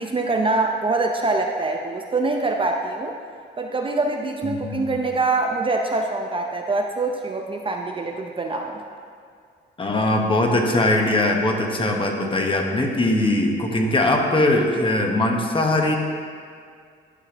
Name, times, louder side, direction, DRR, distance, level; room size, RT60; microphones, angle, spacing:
voice 1, 0.0-3.1 3.6-8.8, right 3 dB, 25° right, 2 dB, 0.6 m, -24 dB
voice 2, 4.4-4.9 9.8-16.0, left 1 dB, 25° left, 1 dB, 1.0 m, -21 dB
12.0 x 5.6 x 2.9 m, 2.2 s
cardioid pair, 90°, 20 cm